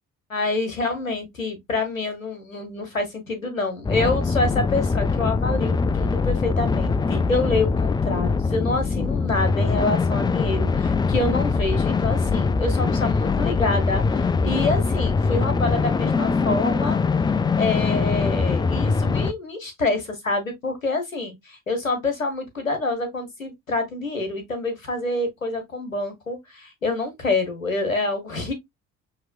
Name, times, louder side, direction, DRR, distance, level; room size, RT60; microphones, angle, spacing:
voice 1, 0.3-17.0 17.6-28.5, left 2 dB, 90° left, 1.1 m, -27 dB
sound 1, 3.8-19.3, left 4 dB, 10° left, 0.3 m, -22 dB
6.2 x 2.9 x 2.5 m
figure-of-eight pair, 50°, 39 cm